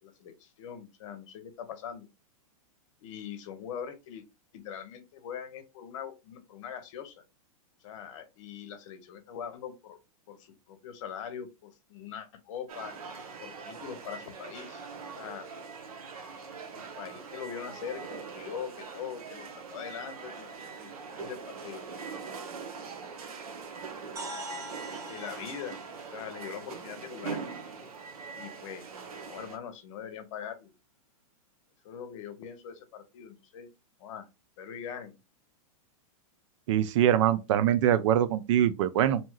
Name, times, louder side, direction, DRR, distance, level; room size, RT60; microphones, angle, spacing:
voice 1, 0.0-2.1 3.0-4.2 4.5-7.2 7.8-10.0 10.3-12.9 13.4-14.8 15.1-15.5 16.7-22.0 25.1-25.8 26.1-27.7 28.3-28.9 29.2-30.7 31.8-33.7 34.0-34.3 34.6-35.2, left 8 dB, 60° left, 0.8 m, -42 dB
sound 1, 12.7-29.6, right 5 dB, 75° right, 0.8 m, -42 dB
sound 2, 24.2-28.1, right 1 dB, 15° right, 0.7 m, -45 dB
voice 2, 36.7-39.2, right 10 dB, 55° right, 0.4 m, -23 dB
2.8 x 2.2 x 3.1 m
hypercardioid pair, 130°, 19 cm